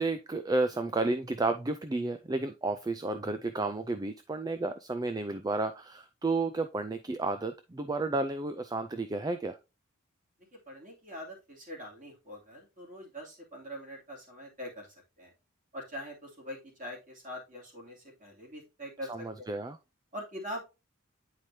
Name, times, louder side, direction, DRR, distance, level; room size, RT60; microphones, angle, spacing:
voice 1, 0.0-9.6 19.1-19.8, right 2 dB, 20° right, 9 dB, 0.4 m, -32 dB
voice 2, 10.7-15.3 15.7-19.5 20.1-20.6, equal, 40° right, -2 dB, 2.8 m, -43 dB
9.1 x 4.9 x 2.7 m, 0.27 s
head